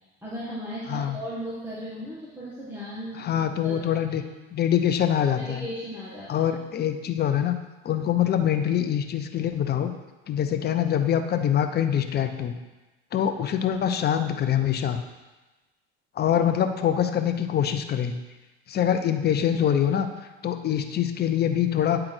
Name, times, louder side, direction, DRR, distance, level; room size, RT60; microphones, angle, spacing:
voice 1, 0.2-3.8 4.1-4.2 5.4-6.5, equal, 5° right, -8 dB, 1.6 m, -36 dB
voice 2, 3.2-4.2 4.5-5.6 6.3-7.6 7.8-9.9 10.3-12.6 13.1-15.0 16.2-18.2 18.7-20.1 20.4-22.0, left 9 dB, 35° left, 7 dB, 0.7 m, -24 dB
8.9 x 3.8 x 4.4 m, 1.1 s
supercardioid pair, 95°, 30 cm